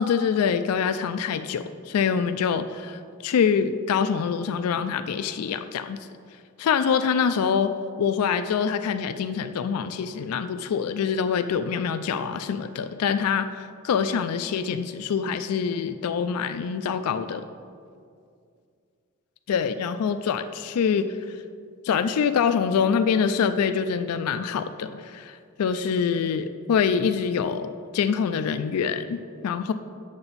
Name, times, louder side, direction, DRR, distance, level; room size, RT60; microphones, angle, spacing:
voice 1, 0.0-6.0 6.6-7.7 8.0-17.5 19.5-21.4 21.8-29.7, left 6 dB, 85° left, 10 dB, 0.3 m, -25 dB
8.7 x 6.7 x 4.0 m, 2.3 s
head